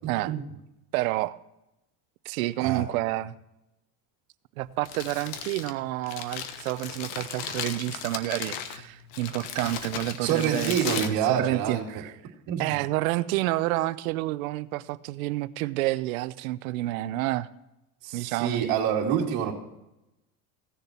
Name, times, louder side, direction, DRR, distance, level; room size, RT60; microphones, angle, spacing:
voice 1, 0.9-1.4 2.2-3.3 4.6-12.1 12.6-17.5 18.1-18.6, right 17 dB, 85° right, 16 dB, 0.7 m, -29 dB
Crumpling crinkling, 4.6-12.0, left 8 dB, 60° left, 1.3 m, -37 dB
voice 2, 10.2-11.9 12.5-12.7 18.0-19.5, right 8 dB, 55° right, -2 dB, 2.3 m, -26 dB
16.5 x 6.8 x 4.3 m, 0.92 s
supercardioid pair, 140°, 41 cm